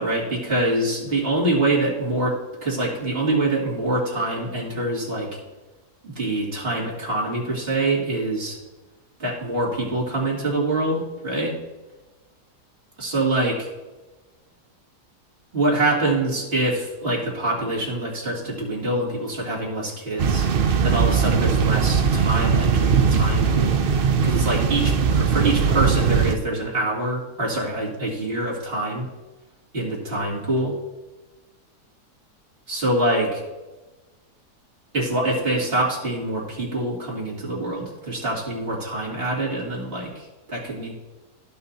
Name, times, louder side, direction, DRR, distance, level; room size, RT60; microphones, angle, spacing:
voice 1, 0.0-5.4 6.0-8.6 9.2-11.5 13.0-13.7 15.5-20.5 20.8-23.8 24.2-29.0 29.7-30.8 32.7-33.4 34.9-40.9, right 2 dB, 35° right, -5 dB, 2.8 m, -25 dB
sound 1, 20.2-26.4, right 6 dB, 85° right, 0.4 m, -20 dB
14.5 x 5.7 x 2.8 m, 1.1 s
omnidirectional pair, 1.8 m